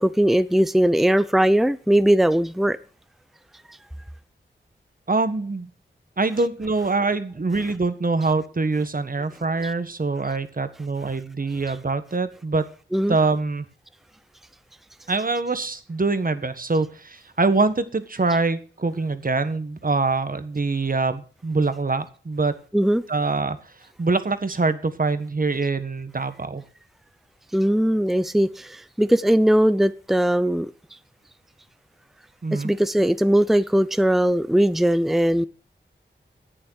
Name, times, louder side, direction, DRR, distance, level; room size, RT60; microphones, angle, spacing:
voice 1, 0.0-2.8 12.9-13.2 22.7-23.0 27.5-30.7 32.5-35.5, right 1 dB, ahead, 0.7 m, -19 dB
voice 2, 5.1-5.7 6.2-12.6 13.1-13.6 15.1-22.5 23.1-23.6 24.0-26.6 32.4-32.7, right 3 dB, 45° right, 1.5 m, -24 dB
11.0 x 8.7 x 6.4 m
cardioid pair, 40°, 20 cm